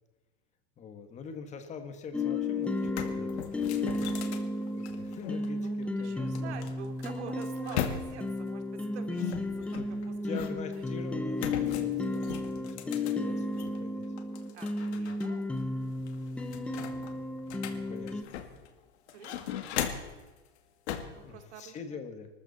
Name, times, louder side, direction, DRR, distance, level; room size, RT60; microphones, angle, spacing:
voice 1, 0.8-4.1 4.7-6.6 9.7-14.1 14.9-15.2 16.9-18.3 21.2-22.3, left 5 dB, 20° left, 7 dB, 1.6 m, -45 dB
sound 1, 2.1-18.2, left 2 dB, 5° left, 0.5 m, -33 dB
sound 2, 2.3-2.4 2.7-5.5 6.4-8.4 9.2-10.8 11.4-13.8 14.2-15.3 15.6-15.7 16.1-18.7 19.1-20.2 20.9-21.2, left 9 dB, 70° left, 2.2 m, -38 dB
voice 2, 5.5-10.4 14.5-15.5 19.1-19.6 21.1-22.0, right 7 dB, 80° right, 7 dB, 2.6 m, -47 dB
24.5 x 13.5 x 4.2 m, 1.2 s
supercardioid pair, 160°, 34 cm